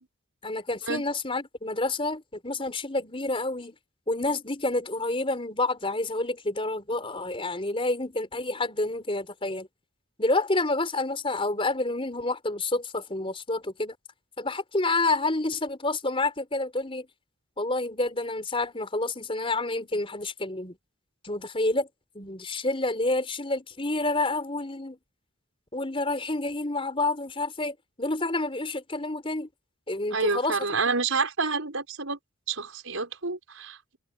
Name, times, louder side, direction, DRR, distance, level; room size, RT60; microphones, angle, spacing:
voice 1, 0.4-3.7 4.1-9.7 10.2-13.9 14.4-17.1 17.6-20.8 21.2-21.9 22.1-25.0 25.7-29.5 29.9-30.6, left 2 dB, 25° left, 4.5 m, -28 dB
voice 2, 30.1-32.2 32.5-34.0, right 4 dB, 80° right, 5.5 m, -28 dB
head